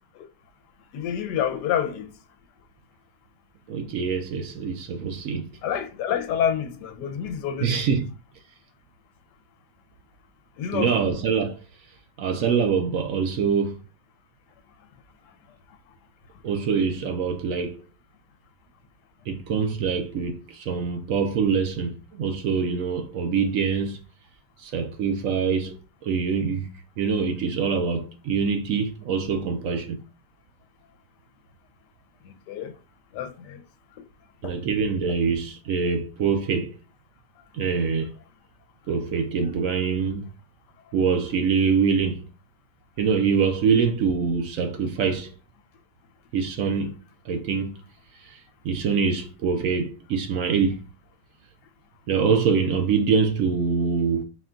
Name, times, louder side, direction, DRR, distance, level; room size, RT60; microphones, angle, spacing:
voice 1, 0.9-2.1 5.6-7.9 10.6-11.0 32.5-32.7 33.1-33.6 34.4-34.5, left 9 dB, 85° left, 1.2 m, -28 dB
voice 2, 3.7-5.5 7.6-8.1 10.7-11.6 12.2-13.8 16.4-17.8 19.3-24.0 24.6-25.8 26.0-26.7 27.0-30.0 34.4-36.8 37.5-38.1 38.9-40.3 40.9-42.2 43.0-45.3 46.3-46.9 47.3-47.8 48.2-50.8 52.1-54.2, right 6 dB, 65° right, 0.8 m, -24 dB
4.3 x 2.2 x 3.7 m
omnidirectional pair, 1.8 m